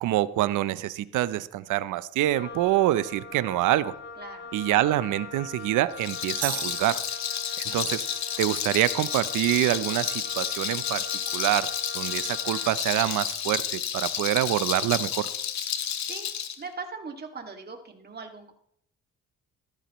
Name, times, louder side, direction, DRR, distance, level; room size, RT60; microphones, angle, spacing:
voice 1, 0.0-3.9 4.5-7.0 7.6-8.1 8.4-11.0 11.3-11.7 11.9-15.3, right 14 dB, 85° right, 16 dB, 0.7 m, -26 dB
Wind instrument woodwind instrument, 2.3-12.9, left 4 dB, 40° left, 2.7 m, -43 dB
voice 2, 4.2-4.5 16.0-18.5, right 4 dB, 35° right, 4 dB, 2.3 m, -40 dB
Rattle, 5.9-16.6, left 9 dB, 65° left, 1.3 m, -31 dB
sound 1, 6.4-7.8, right 13 dB, 70° right, 1.0 m, -37 dB
15.5 x 13.5 x 3.1 m, 0.70 s
cardioid pair, 90°, 30 cm